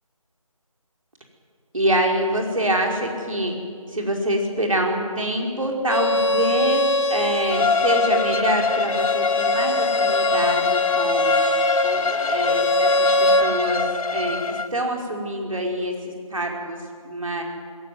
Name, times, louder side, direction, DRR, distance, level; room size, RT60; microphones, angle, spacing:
voice 1, 1.7-3.5 3.9-6.8 7.1-11.3 11.8-13.8 14.1-16.8 17.1-17.4, right 1 dB, 65° right, 2 dB, 5.1 m, -25 dB
Bowed string instrument, 5.9-13.5, left 2 dB, 55° left, 3.9 m, -22 dB
Bowed string instrument 2, 7.5-14.7, left 4 dB, 80° left, 0.6 m, -24 dB
21.0 x 17.5 x 9.5 m, 2.2 s
figure-of-eight pair, 175°, 18 cm